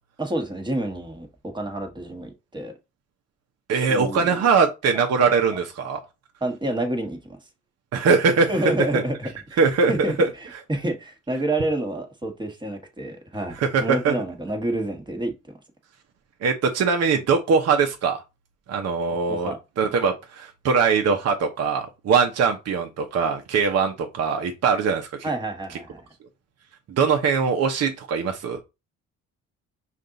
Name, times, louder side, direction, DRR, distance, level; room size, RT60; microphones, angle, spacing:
voice 1, 0.2-2.7 3.8-4.4 5.2-5.3 6.4-7.4 8.5-9.6 9.9-15.6 19.3-19.6 25.2-26.1, right 1 dB, 15° right, 1.3 m, -29 dB
voice 2, 3.7-6.0 7.9-8.5 8.9-9.0 9.6-9.9 10.2-10.3 13.6-14.1 16.4-18.2 18.7-25.3 26.9-28.6, right 5 dB, 55° right, 0.8 m, -21 dB
5.2 x 2.5 x 3.9 m
cardioid pair, 90°, 30 cm